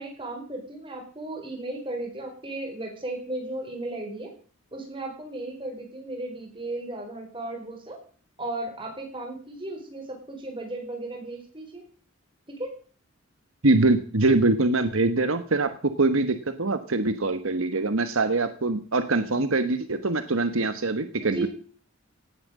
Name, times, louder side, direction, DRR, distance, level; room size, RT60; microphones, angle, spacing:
voice 1, 0.0-4.3 4.7-8.0 8.4-11.8 12.5-12.7 21.2-21.5, right 2 dB, 25° right, 2 dB, 5.1 m, -35 dB
voice 2, 13.6-15.7 16.0-21.5, right 2 dB, 70° right, 10 dB, 1.3 m, -23 dB
18.0 x 9.3 x 7.7 m, 0.44 s
head